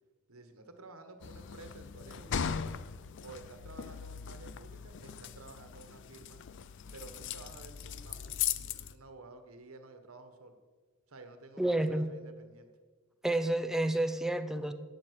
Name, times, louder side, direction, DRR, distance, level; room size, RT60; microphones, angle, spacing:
voice 1, 0.3-2.7 3.2-6.4 6.9-10.6 11.1-12.7, right 3 dB, 85° right, 8 dB, 1.4 m, -52 dB
sound 1, 1.2-8.9, left 8 dB, 60° left, 0.5 m, -39 dB
voice 2, 11.6-12.1 13.2-14.7, right 1 dB, ahead, 8 dB, 0.6 m, -30 dB
11.5 x 9.0 x 6.6 m, 1.5 s
head